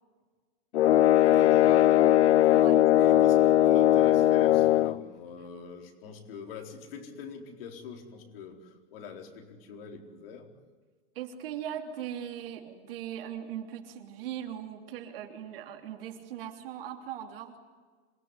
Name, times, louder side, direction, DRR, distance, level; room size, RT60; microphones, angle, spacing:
sound 1, 0.7-5.0, left 13 dB, 75° left, 0.8 m, -20 dB
voice 1, 1.2-2.7 3.0-10.5, left 6 dB, 55° left, 2 dB, 4.3 m, -44 dB
voice 2, 11.1-17.6, right 10 dB, 55° right, 4 dB, 3.3 m, -39 dB
27.5 x 18.0 x 9.8 m, 1.5 s
supercardioid pair, 170°, 34 cm